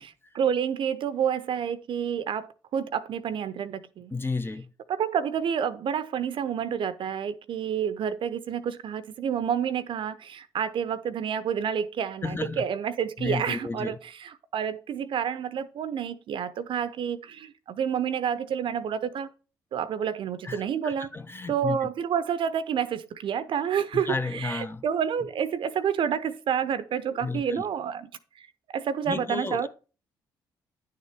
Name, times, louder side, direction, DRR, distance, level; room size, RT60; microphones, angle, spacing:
voice 1, 0.0-4.1 4.9-19.3 19.7-21.1 21.5-28.1 28.7-29.7, right 8 dB, 55° right, 0.7 m, -29 dB
voice 2, 4.1-4.7 12.2-12.6 13.2-14.0 20.4-21.8 23.9-24.8 27.1-27.7 29.1-29.7, left 3 dB, 20° left, 0.6 m, -32 dB
10.0 x 6.6 x 3.4 m
hypercardioid pair, 45°, 10 cm